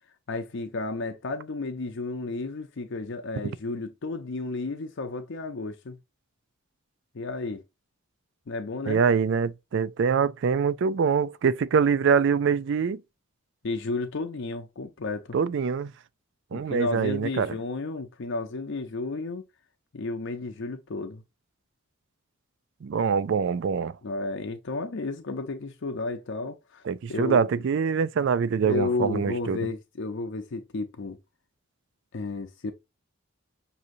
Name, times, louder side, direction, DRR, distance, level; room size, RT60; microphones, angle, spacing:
voice 1, 0.3-6.0 7.1-7.6 8.5-9.0 13.6-15.4 16.5-19.4 19.9-21.2 24.0-26.8 27.1-27.5 28.6-31.2 32.1-32.7, left 3 dB, 60° left, 0.6 m, -32 dB
voice 2, 8.9-13.0 15.3-15.9 16.5-17.5 22.8-23.9 26.9-29.6, right 6 dB, 60° right, 0.4 m, -24 dB
6.2 x 2.7 x 2.6 m
head